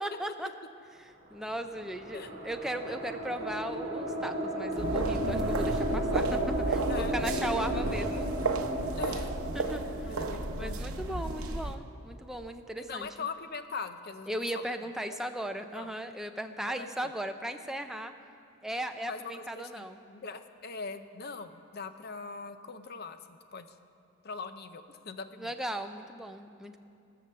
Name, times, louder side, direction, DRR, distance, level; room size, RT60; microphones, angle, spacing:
voice 1, 0.0-0.5 1.0-8.2 9.5-10.1 10.6-13.1 14.3-18.1 18.6-20.0 25.4-26.8, right 1 dB, ahead, 6 dB, 0.4 m, -37 dB
sound 1, 1.3-11.8, right 1 dB, 30° right, 3.1 m, -34 dB
sound 2, 4.7-11.7, right 2 dB, 85° right, 0.7 m, -33 dB
voice 2, 9.0-9.3 9.6-10.8 12.8-14.3 14.7-14.8 15.1-15.2 15.7-15.9 16.7-17.1 19.0-23.7 24.2-25.5, left 4 dB, 45° left, 10 dB, 0.6 m, -41 dB
18.5 x 6.8 x 6.7 m, 2.5 s
head